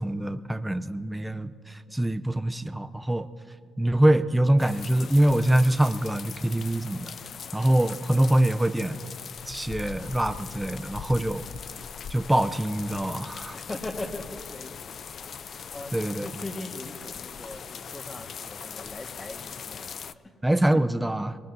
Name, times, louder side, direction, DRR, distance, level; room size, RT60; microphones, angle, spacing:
voice 1, 0.0-3.3 3.8-7.1 7.5-9.0 9.5-11.4 12.1-13.6 15.9-16.3 20.4-21.4, right 1 dB, 10° right, 11 dB, 0.5 m, -24 dB
sound 1, 4.6-20.1, left 7 dB, 55° left, 0.4 m, -40 dB
voice 2, 13.4-20.4, left 2 dB, 20° left, 4 dB, 1.6 m, -40 dB
22.5 x 20.0 x 2.7 m, 2.3 s
cardioid pair, 90°, 0 cm